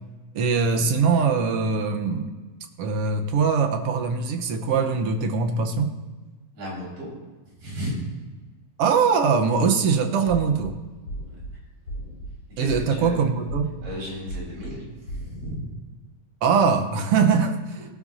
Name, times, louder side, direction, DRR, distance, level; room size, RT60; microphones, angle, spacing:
voice 1, 0.3-2.3 2.8-6.0 8.8-10.7 12.6-13.7 16.4-17.8, right 5 dB, 65° right, 5 dB, 1.6 m, -22 dB
voice 2, 6.5-7.1 7.6-8.0 11.3-11.4 12.5-13.2 13.8-15.7, equal, 85° right, -5 dB, 6.6 m, -34 dB
sound 1, 10.3-10.7 11.1-11.5 11.9-12.3 12.7-13.1 13.5-13.9 14.3-14.7 15.1-15.5, right 1 dB, 45° left, 4.0 m, -35 dB
17.5 x 12.5 x 2.7 m, 1.3 s
omnidirectional pair, 3.5 m